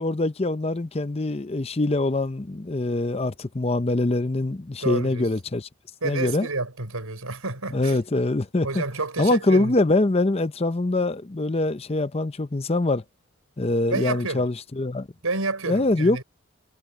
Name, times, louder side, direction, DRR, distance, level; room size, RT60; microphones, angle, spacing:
voice 1, 0.0-5.7 6.0-6.5 7.7-8.8 9.2-13.0 13.6-15.1 15.7-16.2, left 2 dB, 30° left, 0.6 m, -24 dB
voice 2, 4.8-5.3 6.0-8.0 8.6-9.7 13.9-14.5 15.2-16.2, right 3 dB, 85° right, 5.4 m, -29 dB
head